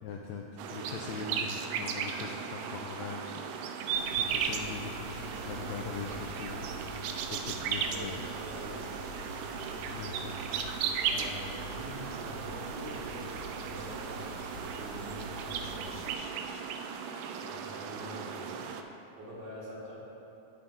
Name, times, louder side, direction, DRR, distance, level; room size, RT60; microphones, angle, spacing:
voice 1, 0.0-0.4 0.7-3.3 3.7-3.9 4.2-8.3 9.9-10.4, left 5 dB, 85° left, 0 dB, 1.6 m, -41 dB
sound 1, 0.6-18.8, right 7 dB, 85° right, 2.1 m, -36 dB
sound 2, 3.9-16.1, left 1 dB, 70° left, 2.3 m, -46 dB
voice 2, 7.7-9.2 11.0-16.1 17.3-18.6 19.2-20.0, equal, 60° right, -6 dB, 2.4 m, -46 dB
9.3 x 7.4 x 3.6 m, 3.0 s
omnidirectional pair, 3.7 m